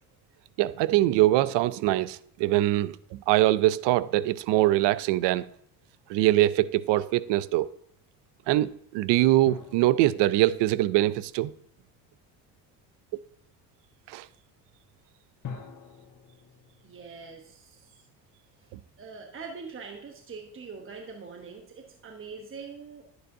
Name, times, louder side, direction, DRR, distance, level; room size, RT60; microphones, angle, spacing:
voice 1, 0.6-3.0 3.3-5.5 6.1-7.7 8.5-11.5 14.1-14.2, right 15 dB, 70° right, 0.5 m, -23 dB
sound 1, 9.5-12.1 15.4-18.1 18.3-18.4, left 6 dB, 45° left, 1.4 m, -46 dB
voice 2, 16.8-18.1 18.6-23.1, right 5 dB, 30° right, 1.0 m, -43 dB
11.0 x 8.0 x 2.7 m
supercardioid pair, 80°, 43 cm